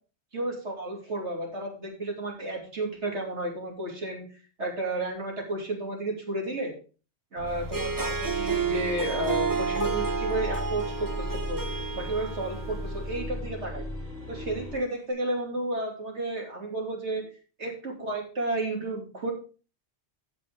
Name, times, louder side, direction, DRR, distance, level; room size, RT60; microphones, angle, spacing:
voice 1, 0.3-4.2 4.6-6.7 7.3-11.6 12.0-13.8 14.3-17.3 17.6-19.3, right 2 dB, 80° right, 0 dB, 3.1 m, -32 dB
sound 1, 7.4-14.9, left 1 dB, 35° left, 6.9 m, -36 dB
Harp, 7.6-13.0, right 5 dB, 20° right, 1.0 m, -31 dB
14.5 x 6.2 x 3.7 m, 0.37 s
omnidirectional pair, 1.2 m